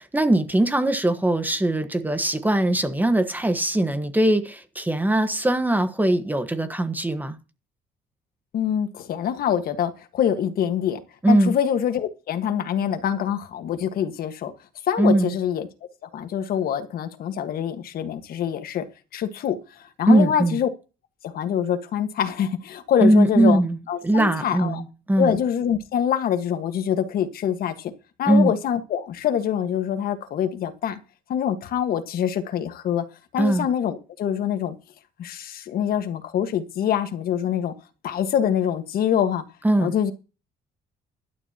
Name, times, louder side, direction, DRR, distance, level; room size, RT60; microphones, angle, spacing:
voice 1, 0.0-7.4 11.2-11.5 15.0-15.3 20.1-20.6 23.0-23.8 24.0-25.4 28.3-28.5 33.4-33.7 39.6-39.9, right 1 dB, 10° right, 1.4 m, -20 dB
voice 2, 8.5-11.0 11.3-14.5 14.9-15.7 16.1-18.8 19.1-19.6 20.0-20.7 21.2-23.6 23.9-24.8 25.2-27.9 28.2-31.0 31.3-33.0 33.3-34.7 35.2-37.7 38.0-39.4 39.8-40.1, left 9 dB, 60° left, 1.6 m, -25 dB
16.0 x 12.0 x 2.9 m
cardioid pair, 110°, 17 cm